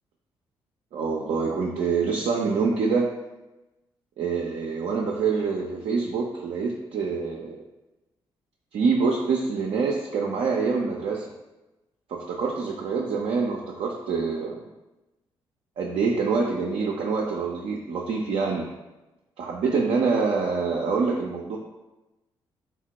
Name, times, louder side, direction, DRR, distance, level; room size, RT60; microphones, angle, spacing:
voice 1, 0.9-3.1 4.2-7.6 8.7-11.2 12.1-14.6 15.8-18.7 19.4-21.6, right 4 dB, 55° right, -1 dB, 0.4 m, -26 dB
3.5 x 2.1 x 2.8 m, 1.0 s
hypercardioid pair, 40°, 12 cm